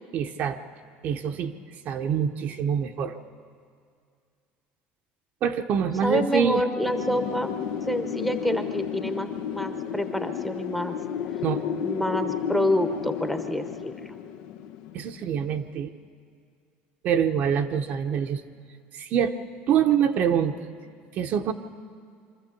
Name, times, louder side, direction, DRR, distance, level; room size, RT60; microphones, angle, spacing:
voice 1, 0.1-0.6 1.0-1.5 1.8-3.2 5.4-6.6 11.4-11.6 14.9-15.9 17.0-18.4 18.9-19.3 19.7-20.5 21.1-21.5, right 8 dB, 40° right, 6 dB, 0.8 m, -25 dB
voice 2, 6.0-7.5 7.9-11.0 11.8-14.1, left 1 dB, 5° left, 7 dB, 0.9 m, -27 dB
Wind, 6.8-15.5, left 8 dB, 85° left, 0.9 m, -32 dB
24.5 x 13.5 x 8.4 m, 2.2 s
cardioid pair, 165°, 4 cm